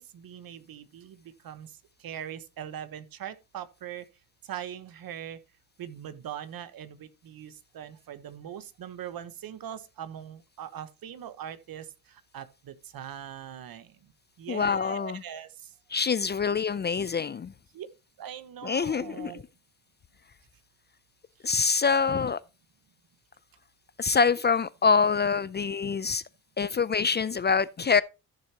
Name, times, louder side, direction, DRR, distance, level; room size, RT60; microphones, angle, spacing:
voice 1, 0.0-1.7 2.0-4.0 4.4-5.4 5.8-14.0 14.4-15.7 17.7-17.9 18.2-19.4, right 10 dB, 65° right, 1.2 m, -41 dB
voice 2, 14.5-15.2 15.9-17.5 18.6-19.3 21.4-22.4 24.0-26.2 26.6-28.0, left 5 dB, 30° left, 0.4 m, -25 dB
14.0 x 6.8 x 2.9 m
cardioid pair, 90°, 38 cm